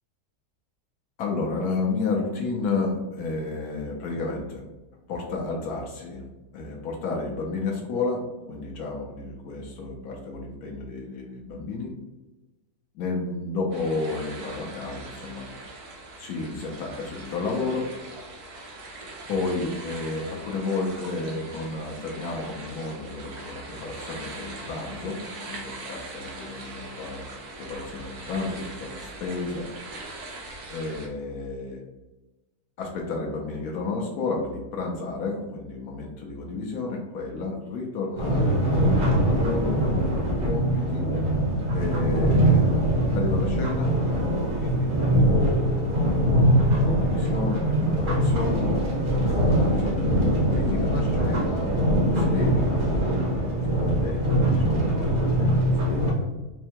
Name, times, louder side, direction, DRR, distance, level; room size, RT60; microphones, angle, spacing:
voice 1, 1.2-4.6 5.1-6.2 6.5-11.9 12.9-15.5 16.2-17.9 19.3-27.2 27.6-29.7 30.7-31.8 32.8-41.1 41.7-42.7 43.1-44.0 44.6-49.9 50.5-53.1 53.4-56.3, left 3 dB, 75° left, -1 dB, 1.1 m, -32 dB
sound 1, 13.7-31.1, right 2 dB, 80° right, 1.3 m, -41 dB
sound 2, 38.2-56.1, right 1 dB, 45° right, 0.7 m, -22 dB
4.5 x 2.1 x 2.8 m, 1.1 s
omnidirectional pair, 1.6 m